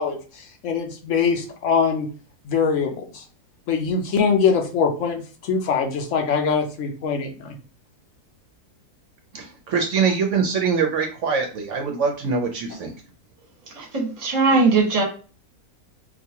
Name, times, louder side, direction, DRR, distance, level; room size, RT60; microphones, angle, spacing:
voice 1, 0.0-2.1 2.4-3.2 3.7-7.6, left 5 dB, 65° left, 3 dB, 0.9 m, -23 dB
voice 2, 9.7-12.9, right 5 dB, 65° right, 3 dB, 0.8 m, -23 dB
voice 3, 13.7-15.0, right 3 dB, 30° right, -1 dB, 1.0 m, -19 dB
3.9 x 2.5 x 2.8 m, 0.38 s
omnidirectional pair, 1.6 m